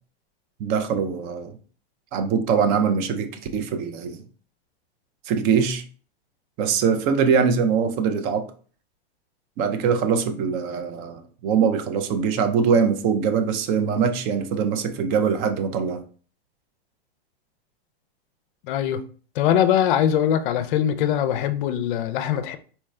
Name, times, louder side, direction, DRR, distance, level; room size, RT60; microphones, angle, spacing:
voice 1, 0.6-1.5 2.1-4.2 5.2-5.8 6.6-8.5 9.6-16.0, right 6 dB, 30° right, 0.5 m, -22 dB
voice 2, 18.7-19.0 19.4-22.6, left 10 dB, 55° left, 0.5 m, -22 dB
4.3 x 2.3 x 3.2 m
supercardioid pair, 140°, 31 cm